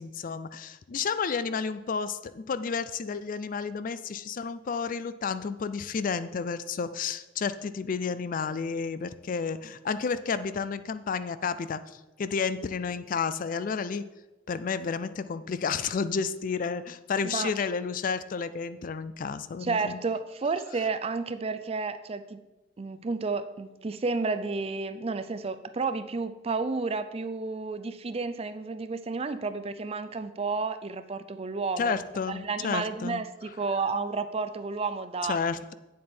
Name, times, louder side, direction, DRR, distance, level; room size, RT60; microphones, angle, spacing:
voice 1, 0.0-14.1 14.5-20.0 31.8-33.2 35.3-35.7, left 5 dB, 45° left, 14 dB, 0.4 m, -31 dB
voice 2, 19.6-22.4 22.8-32.0 32.3-35.4, right 4 dB, 30° right, 12 dB, 0.4 m, -31 dB
8.5 x 7.5 x 4.3 m, 1.1 s
head